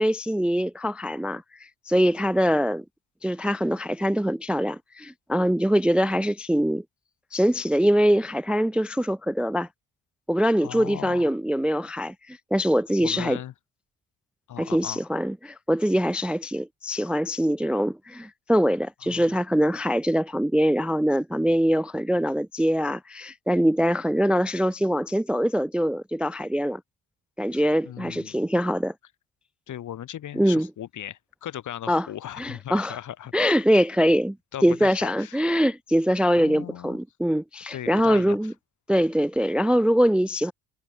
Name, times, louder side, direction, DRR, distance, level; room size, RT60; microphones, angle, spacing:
voice 1, 0.0-2.8 3.2-6.8 7.3-9.7 10.3-13.4 14.6-26.8 27.4-28.9 30.3-30.7 31.9-32.1 32.4-33.0 33.3-34.4 34.6-38.5 38.9-40.5, equal, 5° right, 0.4 m, -23 dB
voice 2, 10.6-11.3 13.0-13.5 14.5-15.0 19.0-19.3 27.5-28.4 29.7-33.3 34.5-35.4 36.3-37.0 37.7-38.4, left 11 dB, 55° left, 1.1 m, -38 dB
cardioid pair, 90°, 37 cm